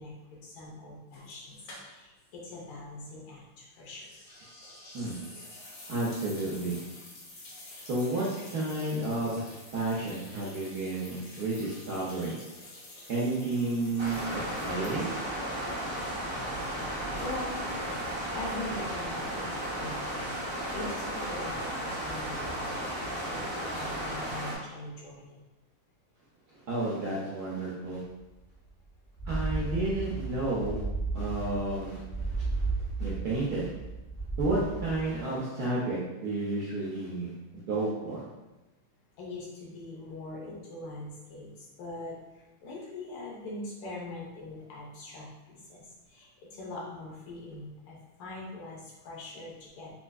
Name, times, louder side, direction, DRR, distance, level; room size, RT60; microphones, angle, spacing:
voice 1, 0.0-4.1 5.3-5.5 17.2-17.7 18.3-25.4 39.2-49.9, left 2 dB, 90° left, -4 dB, 1.8 m, -42 dB
sound 1, 1.1-2.3 2.5-2.6 4.0-15.3, left 2 dB, 65° left, 1.5 m, -48 dB
voice 2, 5.9-6.8 7.9-8.3 8.5-9.4 9.7-12.4 13.1-15.2 24.2-24.3 26.7-28.0 29.3-30.8 31.1-32.6 33.0-33.7 34.4-38.3, right 2 dB, 75° right, -7 dB, 0.9 m, -31 dB
sound 2, 14.0-24.6, right 1 dB, 90° right, 0.4 m, -34 dB
sound 3, 28.5-28.6 29.0-35.2, right 3 dB, 35° left, 0.5 m, -34 dB
4.3 x 2.5 x 2.3 m, 1.1 s
omnidirectional pair, 2.3 m